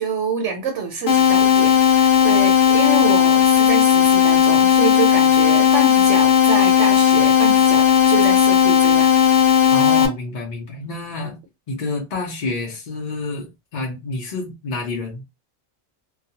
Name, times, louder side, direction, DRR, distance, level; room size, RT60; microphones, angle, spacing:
voice 1, 0.0-9.1, right 4 dB, 70° right, 0.9 m, -26 dB
sound 1, 1.1-10.1, left 9 dB, 70° left, 0.9 m, -15 dB
voice 2, 9.7-11.4 11.7-15.2, left 2 dB, 45° left, 0.6 m, -28 dB
2.3 x 2.3 x 2.8 m
omnidirectional pair, 1.3 m